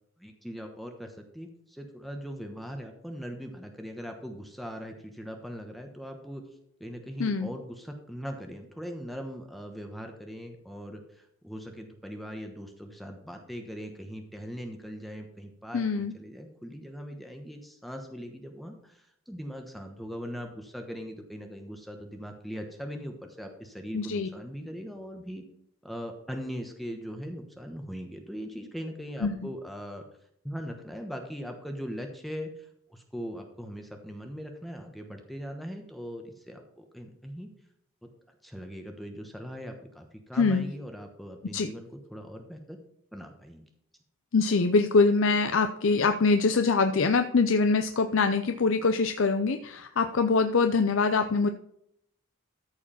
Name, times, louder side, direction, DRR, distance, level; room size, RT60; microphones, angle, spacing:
voice 1, 0.2-6.4 6.8-25.4 25.8-30.0 30.4-37.5 38.4-42.8 43.1-43.6, equal, ahead, 3 dB, 1.1 m, -40 dB
voice 2, 7.2-7.5 15.7-16.1 23.9-24.3 29.2-29.5 40.4-40.7 41.5-41.7 44.3-51.5, left 4 dB, 70° left, 8 dB, 0.6 m, -24 dB
14.0 x 4.8 x 5.7 m, 0.73 s
head